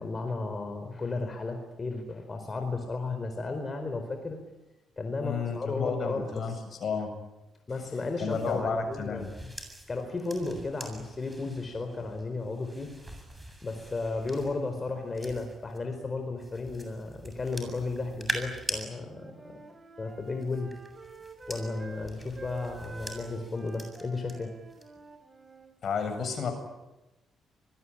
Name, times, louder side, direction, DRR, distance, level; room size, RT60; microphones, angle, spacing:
voice 1, 0.0-4.4 5.0-6.6 7.7-9.3 9.9-12.9 13.6-19.6 20.0-20.7 21.5-24.5, left 3 dB, 30° left, 5 dB, 4.5 m, -34 dB
voice 2, 5.2-6.5 6.8-7.1 8.2-9.3 25.8-26.5, left 5 dB, 55° left, 6 dB, 7.8 m, -31 dB
sound 1, 8.2-15.8 16.4-18.8 20.1-24.3 24.7-25.1, right 1 dB, 10° right, 7.8 m, -43 dB
Wind instrument woodwind instrument, 18.9-25.8, right 2 dB, 25° right, 5.6 m, -48 dB
26.5 x 21.0 x 10.0 m, 1.0 s
cardioid pair, 90°, 0 cm